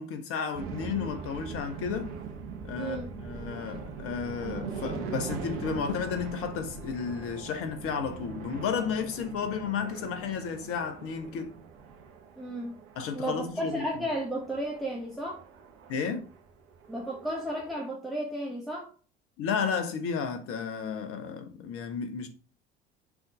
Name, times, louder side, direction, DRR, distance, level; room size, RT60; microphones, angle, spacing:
voice 1, 0.0-2.1 2.6-11.5 13.0-13.8 15.9-16.2 19.4-22.3, left 6 dB, 50° left, 1.2 m, -32 dB
sound 1, 0.5-17.8, right 6 dB, 50° right, 1.4 m, -42 dB
voice 2, 2.8-3.1 12.4-12.8 13.1-15.4 16.9-18.9, right 1 dB, ahead, 1.4 m, -33 dB
6.3 x 4.1 x 4.8 m
figure-of-eight pair, 60°, 29 cm